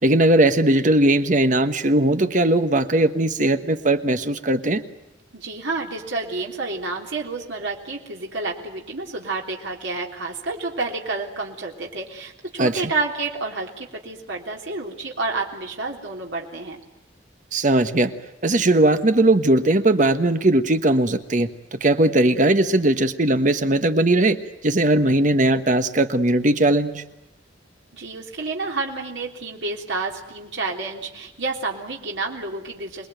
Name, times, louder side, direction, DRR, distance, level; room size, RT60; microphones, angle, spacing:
voice 1, 0.0-4.8 12.6-12.8 17.5-18.1 18.4-21.5 21.8-24.4 24.6-27.0, right 1 dB, 45° right, 9 dB, 1.3 m, -19 dB
voice 2, 5.3-16.8 27.9-33.1, right 3 dB, 80° right, 0 dB, 3.5 m, -29 dB
28.0 x 21.0 x 9.2 m, 0.91 s
head